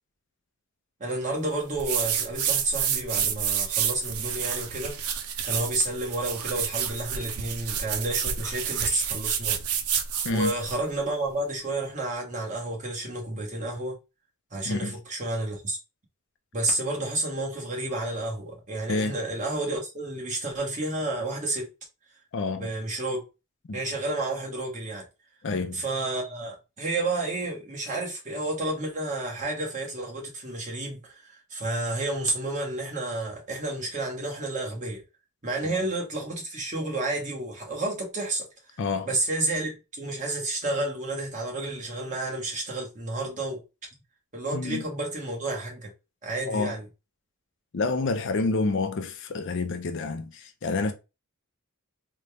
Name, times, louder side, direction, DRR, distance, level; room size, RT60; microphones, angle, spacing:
voice 1, 1.0-5.0 5.4-9.6 10.3-14.0 14.5-15.8 16.5-21.7 22.6-23.2 23.7-25.1 25.7-35.0 35.4-38.5 39.0-43.6 44.3-45.9 46.2-46.9, right 2 dB, 35° right, 1.3 m, -30 dB
sound 1, 1.8-10.8, right 8 dB, 90° right, 0.5 m, -29 dB
voice 2, 14.6-14.9 18.9-19.1 22.3-22.7 23.7-23.8 25.4-25.8 35.6-35.7 38.8-39.1 44.5-44.8 46.5-46.7 47.7-50.9, left 3 dB, 55° left, 0.5 m, -28 dB
3.9 x 2.2 x 3.3 m
head